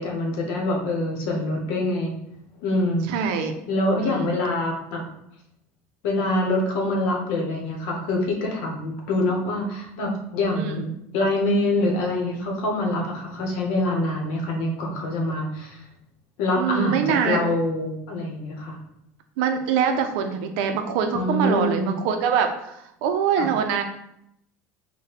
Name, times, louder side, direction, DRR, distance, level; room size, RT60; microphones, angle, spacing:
voice 1, 0.0-2.1 2.6-3.1 3.7-5.0 6.0-15.8 16.4-18.8 21.1-22.0 23.4-23.5, left 1 dB, 70° left, 1 dB, 1.0 m, -25 dB
voice 2, 3.1-3.6 4.0-4.3 10.5-10.9 16.6-17.4 19.4-23.8, right 7 dB, 80° right, 6 dB, 0.5 m, -24 dB
4.1 x 2.2 x 4.1 m, 0.77 s
cardioid pair, 155°, 6 cm